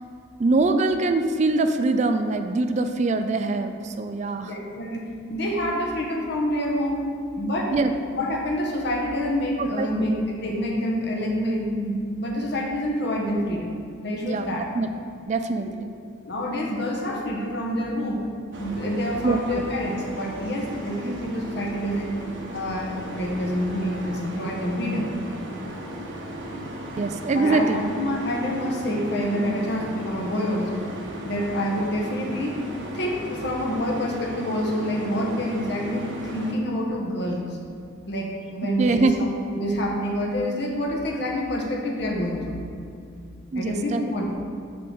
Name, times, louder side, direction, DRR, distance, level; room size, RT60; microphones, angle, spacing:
voice 1, 0.4-4.5 7.7-7.9 9.6-10.1 14.2-14.5 14.7-14.9 15.3-15.9 19.2-19.6 27.0-27.8 38.8-39.1 43.5-44.0, right 3 dB, 35° right, 8 dB, 0.3 m, -23 dB
voice 2, 4.4-5.0 5.3-7.0 7.4-7.7 8.1-14.7 16.2-18.2 18.5-22.1 22.5-25.1 27.3-30.9 31.2-32.6 32.9-37.6 38.1-42.6 43.5-44.3, equal, 55° left, -1 dB, 1.2 m, -27 dB
sound 1, 18.5-36.5, equal, 65° right, 1.1 m, -36 dB
5.8 x 5.1 x 6.2 m, 2.5 s
head